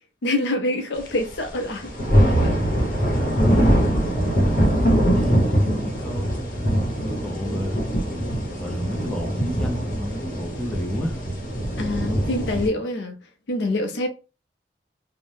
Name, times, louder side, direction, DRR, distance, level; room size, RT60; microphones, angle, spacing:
voice 1, 0.2-1.9 2.4-2.8 11.8-13.2 13.5-14.1, left 1 dB, 85° left, 0.5 m, -26 dB
sound 1, 1.4-1.5 1.6-12.7, equal, 50° left, 0.9 m, -22 dB
voice 2, 3.1-3.9 4.4-7.9 8.6-11.2, equal, 5° left, 0.5 m, -32 dB
2.7 x 2.1 x 3.2 m
head